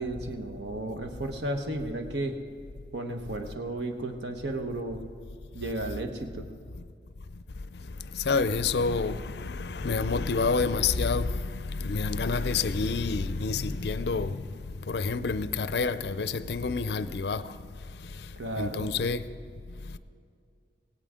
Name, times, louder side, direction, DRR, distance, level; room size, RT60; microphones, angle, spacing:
voice 1, 0.0-2.4 2.9-5.0 5.5-6.5 18.4-18.9, right 1 dB, 80° right, 1.2 m, -33 dB
voice 2, 8.3-9.2 9.6-11.3 11.8-14.3 14.9-17.4 18.6-19.2, left 4 dB, 70° left, 0.5 m, -27 dB
17.5 x 17.0 x 3.7 m
head